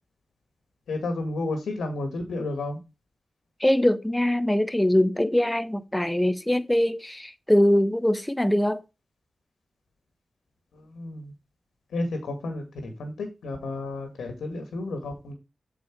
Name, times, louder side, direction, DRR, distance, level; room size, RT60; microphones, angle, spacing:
voice 1, 0.9-2.8 10.7-11.3 11.9-15.3, left 2 dB, 90° left, 1.9 m, -32 dB
voice 2, 3.6-8.8, left 1 dB, 10° left, 1.2 m, -22 dB
8.0 x 5.0 x 4.6 m
cardioid pair, 40°, 0 cm